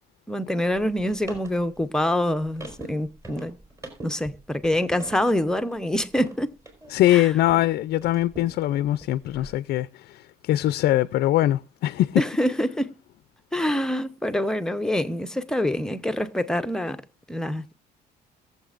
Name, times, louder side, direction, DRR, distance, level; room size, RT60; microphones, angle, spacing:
voice 1, 0.3-3.6 4.0-6.6 7.1-7.3 12.2-12.9 13.5-17.0 17.3-17.7, left 1 dB, 5° left, 0.7 m, -25 dB
sound 1, 0.7-7.7 8.0-9.5, right 2 dB, 20° right, 4.1 m, -43 dB
voice 2, 6.9-12.2, left 14 dB, 70° left, 0.4 m, -22 dB
22.0 x 7.3 x 2.5 m
cardioid pair, 110°, 17 cm